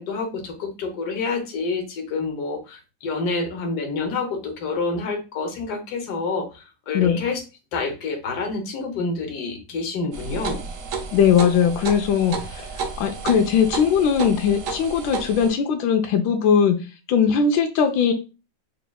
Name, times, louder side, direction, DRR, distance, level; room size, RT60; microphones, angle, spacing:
voice 1, 0.0-7.4 7.7-10.6, left 3 dB, 65° left, 3 dB, 1.4 m, -28 dB
sound 1, 10.1-15.5, right 4 dB, 65° right, 0.8 m, -32 dB
voice 2, 11.1-12.7 13.0-16.8 17.1-18.1, left 7 dB, 90° left, 5 dB, 1.3 m, -19 dB
5.2 x 2.8 x 2.3 m, 0.31 s
omnidirectional pair, 2.0 m